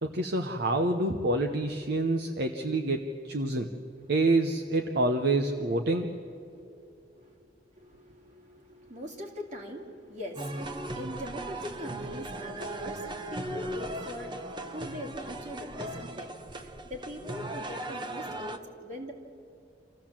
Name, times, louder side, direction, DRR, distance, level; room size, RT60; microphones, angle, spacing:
voice 1, 0.0-3.7 4.1-6.1, right 2 dB, 65° right, 5 dB, 0.9 m, -27 dB
voice 2, 3.6-4.4 6.3-6.7 7.2-7.5 7.8-19.1, equal, 45° right, 1 dB, 2.7 m, -42 dB
sound 1, 10.4-18.6, right 1 dB, 25° right, 1.0 m, -38 dB
26.5 x 15.0 x 7.4 m, 2.6 s
head